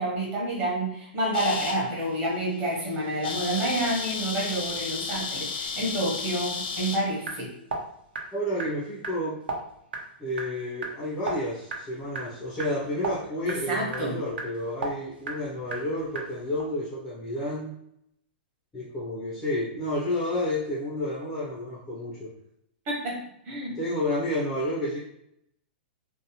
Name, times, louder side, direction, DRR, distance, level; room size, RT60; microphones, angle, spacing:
voice 1, 0.0-7.5 13.4-14.2 22.9-23.2 23.5-23.8, right 1 dB, 25° right, -4 dB, 0.8 m, -29 dB
sound 1, 1.3-1.8 2.3-2.5 2.8-2.9 3.1-7.0, left 5 dB, 65° left, 0.5 m, -33 dB
sound 2, 7.1-16.6, right 3 dB, 75° right, 0.6 m, -38 dB
voice 2, 8.3-9.4 10.2-17.7 18.7-22.3 23.8-25.0, left 1 dB, 10° left, -7 dB, 0.4 m, -30 dB
2.7 x 2.0 x 2.7 m, 0.76 s
supercardioid pair, 175°, 6 cm